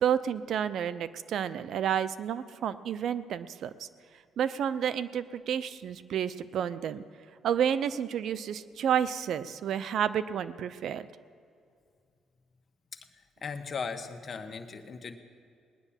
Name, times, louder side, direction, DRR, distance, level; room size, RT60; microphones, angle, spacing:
voice 1, 0.0-3.9 4.4-7.0 7.4-11.0, right 9 dB, 70° right, 15 dB, 0.6 m, -30 dB
voice 2, 13.4-15.1, left 5 dB, 45° left, 6 dB, 1.3 m, -37 dB
19.5 x 9.8 x 7.3 m, 2.3 s
cardioid pair, 90°, 0 cm